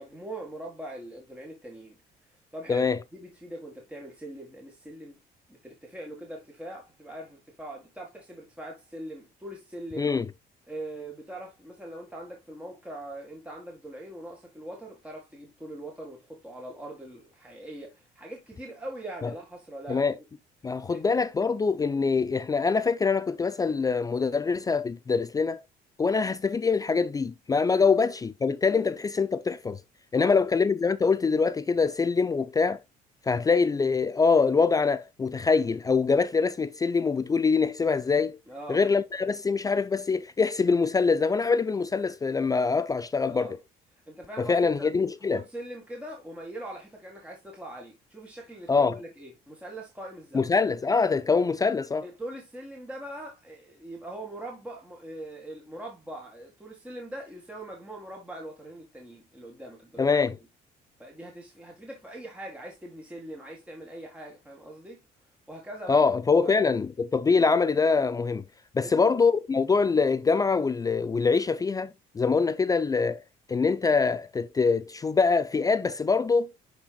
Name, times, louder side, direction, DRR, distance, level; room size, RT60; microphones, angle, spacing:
voice 1, 0.0-2.0 2.5-5.2 5.5-10.1 10.7-20.2 20.9-21.0 27.7-27.9 28.7-28.8 30.1-30.4 38.5-38.8 43.3-43.6 44.1-44.9 45.3-50.5 52.0-60.4 61.0-65.0 65.5-66.0 66.4-66.8 68.8-69.2, right 1 dB, 5° right, 1.9 m, -42 dB
voice 2, 20.6-25.6 26.0-29.8 30.1-32.8 33.3-38.4 38.7-43.6 44.4-45.4 48.7-49.0 50.3-52.0 60.0-60.4 65.9-68.4 68.7-73.2 73.5-76.5, left 4 dB, 20° left, 0.4 m, -24 dB
11.5 x 4.4 x 2.3 m
cardioid pair, 110°, 17 cm